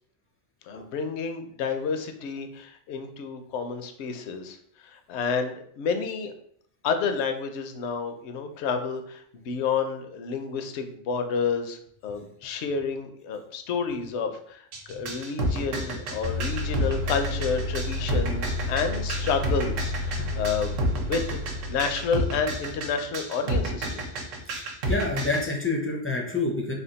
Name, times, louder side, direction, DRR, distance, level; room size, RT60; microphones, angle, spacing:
voice 1, 0.6-4.6 4.8-6.3 6.8-20.8 21.1-24.0, left 5 dB, 70° left, 7 dB, 0.8 m, -30 dB
sound 1, 14.7-25.4, right 1 dB, 90° right, 1.1 m, -30 dB
sound 2, 16.2-22.8, left 2 dB, 45° right, 0.5 m, -32 dB
voice 2, 24.5-26.7, left 3 dB, 20° left, -1 dB, 0.3 m, -28 dB
3.5 x 2.3 x 3.8 m, 0.64 s
omnidirectional pair, 1.3 m